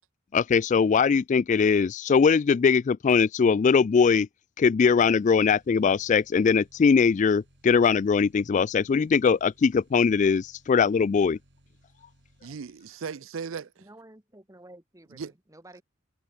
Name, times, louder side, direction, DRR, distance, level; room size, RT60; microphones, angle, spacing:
voice 1, 0.3-4.3 4.6-11.4, left 5 dB, 40° left, 0.3 m, -21 dB
sound 1, 5.1-13.1, right 1 dB, 60° right, 5.7 m, -62 dB
voice 2, 12.4-13.9 15.1-15.3, right 6 dB, 85° right, 0.5 m, -37 dB
voice 3, 13.8-15.8, right 1 dB, 15° right, 2.0 m, -51 dB
head